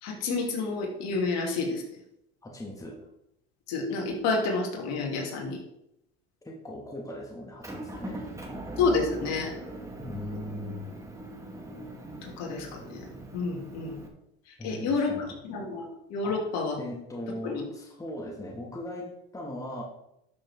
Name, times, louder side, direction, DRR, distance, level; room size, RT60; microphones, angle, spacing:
voice 1, 0.0-1.8 3.7-5.6 8.8-9.5 10.3-10.4 12.4-13.1 13.3-14.0 14.6-15.8 16.1-16.8 17.4-17.6, left 4 dB, 60° left, -1 dB, 3.2 m, -29 dB
voice 2, 2.4-3.0 6.4-8.2 10.0-10.9 14.6-15.2 16.2-16.5 16.8-19.8, left 1 dB, 10° left, -1 dB, 2.2 m, -39 dB
Motor vehicle (road) / Engine, 7.6-14.1, right 1 dB, 10° right, 2.2 m, -41 dB
12.0 x 6.8 x 3.7 m, 0.81 s
supercardioid pair, 95°, 30 cm